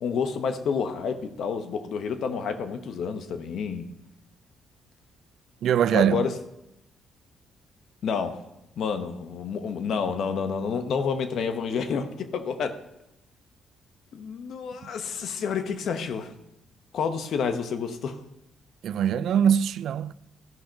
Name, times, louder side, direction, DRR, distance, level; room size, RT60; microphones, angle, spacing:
voice 1, 0.0-3.9 5.9-6.3 8.0-8.4 8.8-12.8 14.1-16.3 16.9-18.2, left 6 dB, 70° left, 1.0 m, -29 dB
voice 2, 5.6-6.3 18.8-20.1, right 9 dB, 70° right, 0.3 m, -22 dB
14.0 x 5.9 x 5.2 m
cardioid pair, 90°, 0 cm